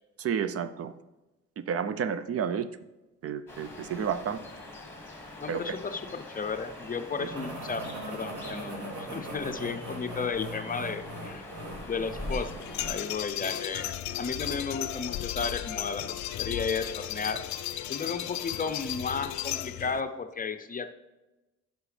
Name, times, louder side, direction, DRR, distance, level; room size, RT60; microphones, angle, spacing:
voice 1, 0.2-0.9 1.7-2.7 3.2-4.4 5.5-5.8, right 7 dB, 50° right, 12 dB, 0.5 m, -30 dB
sound 1, 3.5-12.9, left 1 dB, 10° left, 2.0 m, -43 dB
voice 2, 5.4-11.4 11.9-12.5 12.8-13.9 14.2-16.0 16.4-17.4 17.9-20.9, left 5 dB, 30° left, 9 dB, 0.6 m, -33 dB
sound 2, 7.3-13.1, equal, 75° right, 2.5 m, -40 dB
sound 3, 12.2-20.0, left 12 dB, 70° left, 0.5 m, -35 dB
9.6 x 6.3 x 3.3 m, 1.1 s
cardioid pair, 90°, 30 cm